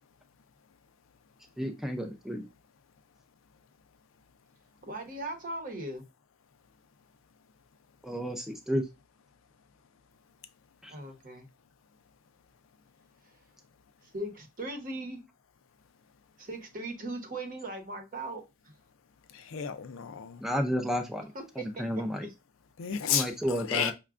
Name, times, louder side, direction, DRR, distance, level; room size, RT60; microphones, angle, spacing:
voice 1, 1.6-2.4 8.0-8.8 10.8-10.9 20.4-22.3 23.1-23.9, equal, ahead, 0.4 m, -32 dB
voice 2, 4.9-6.0 10.9-11.5 14.1-15.2 16.4-18.4 21.3-21.8 22.2-22.3, right 1 dB, 45° right, 0.9 m, -38 dB
voice 3, 19.3-20.4 22.8-23.9, left 9 dB, 70° left, 0.4 m, -32 dB
5.6 x 2.2 x 2.4 m
head